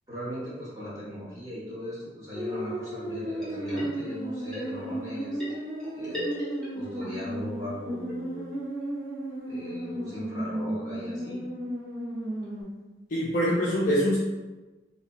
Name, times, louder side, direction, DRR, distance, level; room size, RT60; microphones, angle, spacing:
voice 1, 0.1-5.4 5.9-6.2 6.7-8.5 9.5-11.4, equal, 20° right, -11 dB, 1.2 m, -38 dB
sound 1, 2.3-12.6, right 1 dB, 50° right, 1.2 m, -34 dB
sound 2, 3.4-4.3 4.5-7.1 7.4-7.5 7.6-7.7 8.1-8.2 8.5-8.6 8.8-8.9 9.3-9.4, equal, 5° left, 0.9 m, -39 dB
voice 2, 13.1-14.2, equal, 50° left, -7 dB, 0.4 m, -24 dB
2.8 x 2.1 x 2.6 m, 1.2 s
head